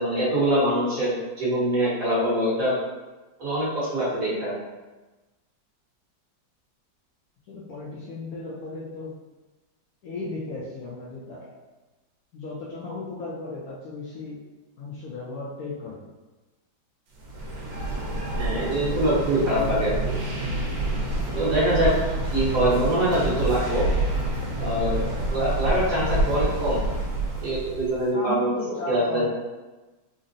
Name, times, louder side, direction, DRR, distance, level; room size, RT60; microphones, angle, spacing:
voice 1, 0.0-2.7 3.4-4.5 18.4-20.1 21.3-21.9 22.3-23.9 24.6-25.0 25.3-26.8 27.4-28.6 28.9-29.3, right 1 dB, 55° right, -8 dB, 1.2 m, -24 dB
voice 2, 7.5-9.1 10.0-11.6 12.3-14.4 14.8-16.0 28.1-29.3, left 3 dB, 70° left, -5 dB, 0.9 m, -35 dB
sound 1, 17.2-28.0, right 2 dB, 85° right, 1.3 m, -27 dB
3.8 x 2.0 x 2.5 m, 1.2 s
omnidirectional pair, 1.9 m